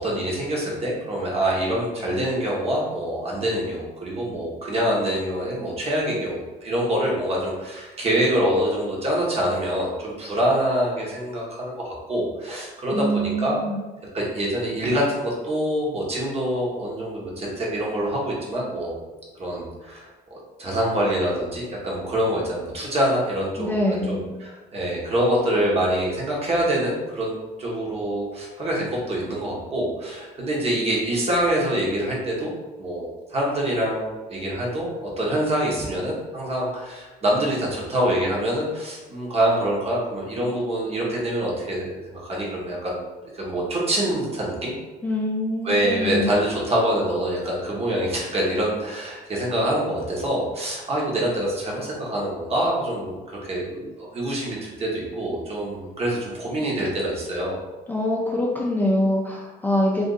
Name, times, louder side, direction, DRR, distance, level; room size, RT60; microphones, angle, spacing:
voice 1, 0.0-13.0 13.4-13.6 14.1-19.0 19.4-27.3 27.6-32.5 32.8-44.7 45.6-57.6, right 1 dB, 35° right, -4 dB, 1.1 m, -25 dB
voice 2, 12.9-13.8 23.6-24.2 45.0-46.3 57.9-60.1, left 1 dB, 10° left, -3 dB, 0.4 m, -24 dB
2.6 x 2.4 x 3.8 m, 1.2 s
cardioid pair, 110°, 17 cm